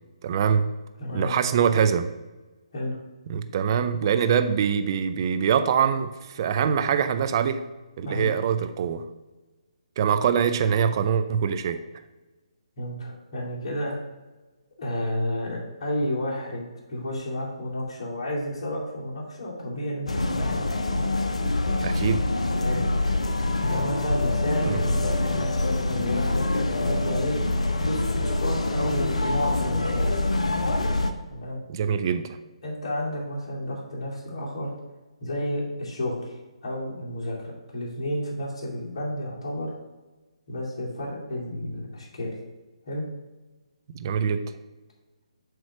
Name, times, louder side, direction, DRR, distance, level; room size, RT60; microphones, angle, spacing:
voice 1, 0.2-0.7 1.1-2.1 3.3-7.6 8.0-9.0 10.0-11.8 21.8-22.2 24.6-24.8 31.7-32.4 43.9-44.5, right 7 dB, 40° right, 10 dB, 0.5 m, -24 dB
voice 2, 1.0-1.4 2.7-3.0 8.0-8.3 12.8-14.0 14.8-20.6 22.6-22.8 23.6-27.4 27.8-30.1 31.3-31.6 32.6-34.7 35.2-36.3 36.6-37.4 37.7-39.7 40.5-42.3 42.9-43.1, left 1 dB, 50° left, -5 dB, 2.3 m, -31 dB
sound 1, 20.1-31.1, left 2 dB, 75° left, 0.7 m, -25 dB
7.9 x 3.1 x 6.0 m, 1.2 s
figure-of-eight pair, 140°, 3 cm